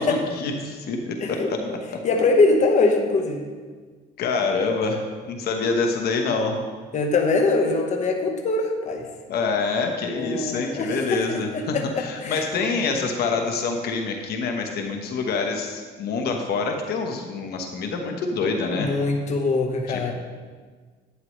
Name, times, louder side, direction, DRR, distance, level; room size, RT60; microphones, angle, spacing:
voice 1, 0.0-1.6 4.2-6.6 9.3-18.9 19.9-20.1, left 4 dB, 70° left, 3 dB, 1.2 m, -26 dB
voice 2, 1.2-1.7 2.0-3.4 6.9-9.0 10.1-12.7 18.8-20.1, left 3 dB, 45° left, 2 dB, 1.2 m, -23 dB
11.5 x 9.2 x 3.2 m, 1.5 s
cardioid pair, 110°, 17 cm